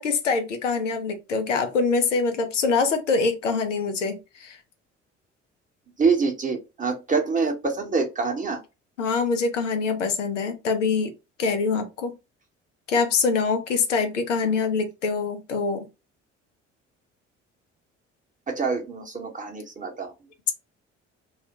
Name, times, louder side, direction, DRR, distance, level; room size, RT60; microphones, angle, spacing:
voice 1, 0.0-4.6 9.0-11.1 11.4-12.1 12.9-15.8, left 4 dB, 80° left, 0.5 m, -24 dB
voice 2, 6.0-8.6 18.5-20.1, right 4 dB, 20° right, 0.8 m, -25 dB
2.4 x 2.0 x 2.8 m
figure-of-eight pair, 50°, 37 cm